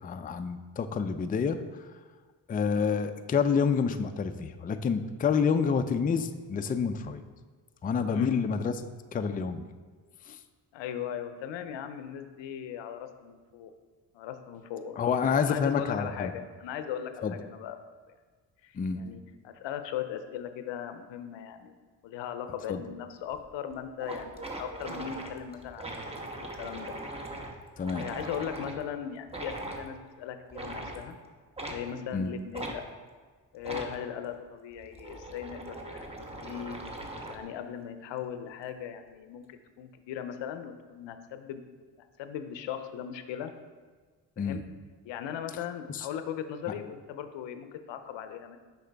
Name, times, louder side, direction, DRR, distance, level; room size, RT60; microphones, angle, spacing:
voice 1, 0.0-1.9 2.5-7.2 7.8-8.7 9.1-9.6 10.3-10.4 15.0-16.3 17.2-17.4 18.7-19.0 22.7-22.8 27.8-28.1 32.1-32.3 44.4-44.6 45.9-46.1, left 6 dB, 20° left, 8 dB, 0.4 m, -28 dB
voice 2, 10.7-13.7 14.1-15.1 15.4-17.8 18.6-21.8 22.0-26.0 26.3-26.9 27.4-27.6 28.0-31.2 31.6-32.8 33.5-36.8 37.3-41.6 42.2-43.5 44.4-44.6 45.1-48.6, left 9 dB, 75° left, 9 dB, 0.6 m, -38 dB
sound 1, 23.3-23.4 23.7-23.8 24.0-28.8 29.3-29.8 30.5-31.0 31.6-31.8 32.5-32.8 33.6-33.9 34.7-37.5, right 2 dB, 15° right, 1.0 m, -40 dB
6.4 x 5.0 x 3.4 m, 1.5 s
supercardioid pair, 60°, 44 cm